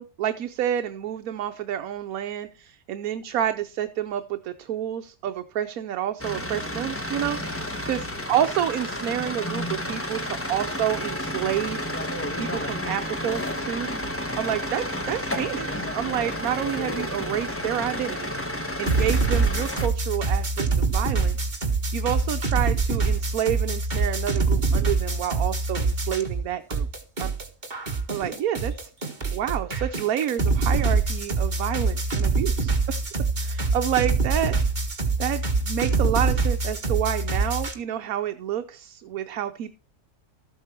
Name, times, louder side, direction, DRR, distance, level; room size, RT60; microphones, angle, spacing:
voice 1, 0.0-7.4 7.9-11.9 12.4-13.9 14.4-18.3 18.8-21.4 21.9-26.9 27.2-27.3 28.1-28.9 29.3-33.0 33.4-34.6 35.2-39.7, right 10 dB, 70° right, 8 dB, 1.2 m, -29 dB
sound 1, 6.2-19.9, left 1 dB, 10° left, 1.2 m, -31 dB
sound 2, 18.9-26.4 26.7-37.7, right 3 dB, 30° right, 1.9 m, -25 dB
13.5 x 8.4 x 4.4 m, 0.34 s
omnidirectional pair, 1.6 m